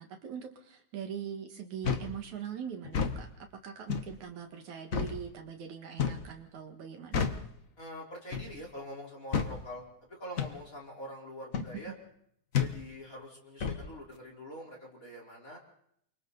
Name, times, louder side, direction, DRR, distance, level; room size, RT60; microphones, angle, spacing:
voice 1, 0.0-3.3 3.6-7.3, right 8 dB, 70° right, 4 dB, 3.2 m, -41 dB
sound 1, 1.8-2.1 2.8-3.2 3.9-4.1 4.9-5.2 6.0-6.3 7.1-7.5 8.3-8.6 9.3-9.6 10.4-10.6 11.5-11.7 12.5-12.8 13.6-13.8, left 6 dB, 65° left, 0.8 m, -30 dB
voice 2, 7.8-11.9 12.5-15.6, left 1 dB, 25° left, -2 dB, 4.6 m, -45 dB
28.5 x 25.0 x 4.1 m, 0.71 s
omnidirectional pair, 3.5 m